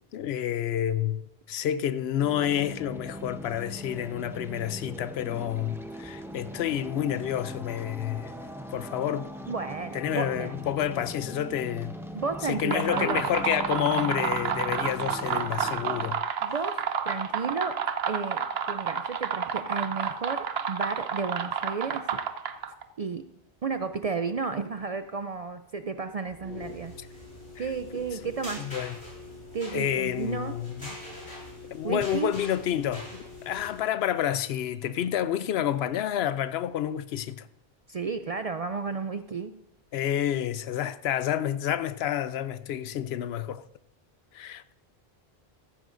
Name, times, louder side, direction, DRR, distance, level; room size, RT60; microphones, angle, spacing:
voice 1, 0.0-8.3 8.7-9.3 9.9-12.0 12.4-16.2 27.0-27.1 27.6-27.7 28.6-29.0 29.7-31.0 31.3-31.4 31.7-37.5 39.9-43.6 44.3-44.7, left 10 dB, 75° left, 0.8 m, -29 dB
sound 1, 2.2-16.1, equal, 5° right, 0.6 m, -40 dB
voice 2, 9.5-10.6 12.1-13.2 16.4-17.8 18.1-22.1 23.0-23.2 23.6-26.9 27.6-28.7 29.5-30.5 31.8-32.3 37.9-39.5, right 5 dB, 55° right, 0.4 m, -32 dB
sound 2, 12.5-22.8, right 7 dB, 75° right, 1.0 m, -30 dB
sound 3, 26.3-33.8, left 2 dB, 35° left, 5.5 m, -43 dB
15.0 x 14.0 x 2.5 m
omnidirectional pair, 1.1 m